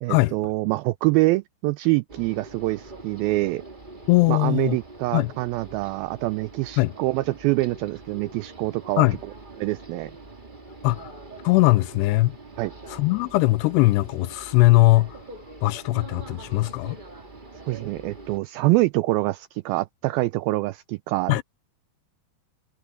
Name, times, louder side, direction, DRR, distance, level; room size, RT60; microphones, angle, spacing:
voice 1, 0.0-3.6 4.3-9.1 9.6-10.1 12.6-12.7 17.7-21.4, right 20 dB, 85° right, 2.1 m, -25 dB
sound 1, 2.1-18.4, right 2 dB, 30° right, 0.8 m, -44 dB
voice 2, 4.1-4.8 5.1-5.3 6.8-6.9 9.0-9.2 10.8-11.1 11.4-12.3 12.9-15.2 15.6-17.0 21.3-21.4, left 20 dB, 90° left, 2.7 m, -20 dB
omnidirectional pair, 4.8 m